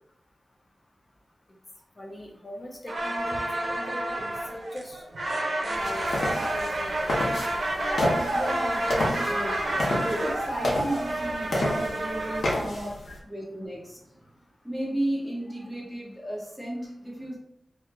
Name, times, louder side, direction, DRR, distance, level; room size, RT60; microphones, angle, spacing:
voice 1, 2.0-5.0 5.8-7.4 13.1-13.2, left 1 dB, 30° left, 0 dB, 0.5 m, -41 dB
sound 1, 2.9-12.4, right 1 dB, 75° right, 0.6 m, -29 dB
sound 2, 5.7-13.2, left 1 dB, 75° left, 0.9 m, -30 dB
voice 2, 8.3-14.2 14.6-17.4, right 1 dB, 10° left, -6 dB, 1.2 m, -34 dB
2.8 x 2.4 x 3.4 m, 0.74 s
wide cardioid pair, 85°, 0 cm